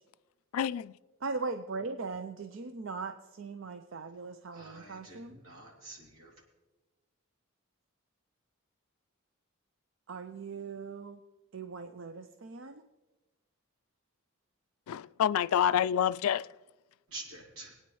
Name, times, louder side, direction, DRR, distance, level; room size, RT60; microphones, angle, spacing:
voice 1, 0.5-0.9 14.9-16.5, left 9 dB, 90° left, 0.3 m, -27 dB
voice 2, 1.2-5.4 10.1-11.2 11.5-12.8, right 4 dB, 60° right, 0.5 m, -39 dB
voice 3, 4.5-6.3 17.1-17.7, right 2 dB, 80° right, 2.8 m, -47 dB
21.0 x 9.4 x 3.1 m
head